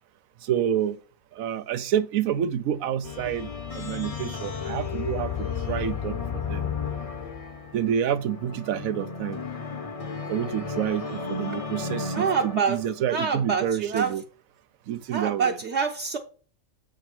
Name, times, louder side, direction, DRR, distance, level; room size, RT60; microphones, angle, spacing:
voice 1, 0.4-1.0 1.3-6.6 7.7-9.4 10.3-14.2 14.9-15.5, right 9 dB, 90° right, 1.1 m, -28 dB
sound 1, 3.0-13.1, left 5 dB, 30° left, 0.8 m, -33 dB
voice 2, 12.1-12.8 13.1-14.1 15.1-16.2, right 6 dB, 60° right, 1.0 m, -26 dB
7.7 x 5.1 x 4.4 m
omnidirectional pair, 1.4 m